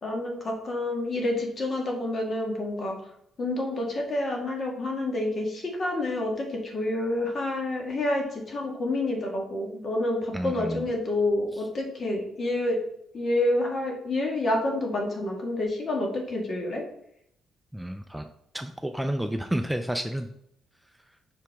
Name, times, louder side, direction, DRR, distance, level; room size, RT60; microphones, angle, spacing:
voice 1, 0.0-2.9 3.4-12.8 13.1-16.8, left 1 dB, 45° left, 1 dB, 1.7 m, -28 dB
voice 2, 10.3-10.9 11.5-11.7 17.7-18.3 18.5-20.3 20.8-21.2, right 1 dB, 5° right, 6 dB, 0.4 m, -31 dB
5.7 x 4.7 x 3.5 m, 0.74 s
cardioid pair, 90°, 0 cm